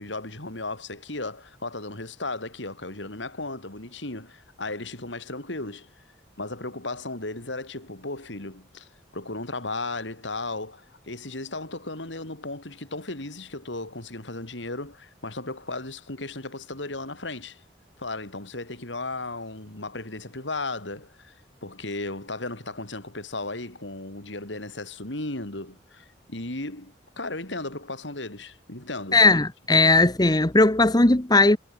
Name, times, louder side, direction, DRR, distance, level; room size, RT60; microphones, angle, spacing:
voice 1, 0.0-5.9 6.4-17.6 18.0-21.3 21.6-29.3, left 2 dB, 85° left, 5.0 m, -35 dB
voice 2, 29.1-31.6, left 2 dB, 20° left, 1.2 m, -18 dB
head